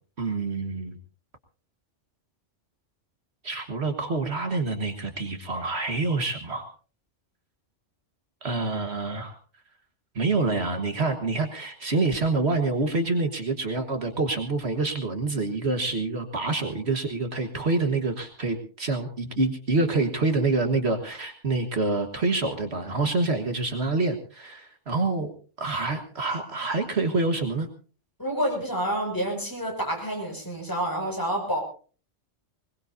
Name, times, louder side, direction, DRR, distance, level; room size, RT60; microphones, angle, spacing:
voice 1, 0.2-1.0 3.4-6.7 8.4-9.3 10.1-25.3 25.6-27.7, right 3 dB, 60° right, 6 dB, 1.7 m, -27 dB
voice 2, 28.2-31.6, right 1 dB, 15° left, 1 dB, 5.9 m, -28 dB
21.5 x 21.5 x 2.7 m, 0.39 s
omnidirectional pair, 1.2 m